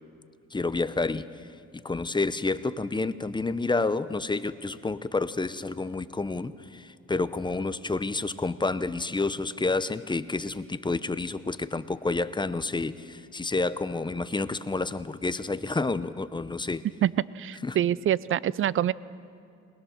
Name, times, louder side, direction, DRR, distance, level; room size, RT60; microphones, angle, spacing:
voice 1, 0.5-1.5 1.7-16.9 17.6-17.8, left 3 dB, 15° left, 14 dB, 0.6 m, -29 dB
voice 2, 17.0-18.9, right 11 dB, 45° right, 20 dB, 0.5 m, -26 dB
22.0 x 20.0 x 6.4 m, 2.5 s
cardioid pair, 90°, 30 cm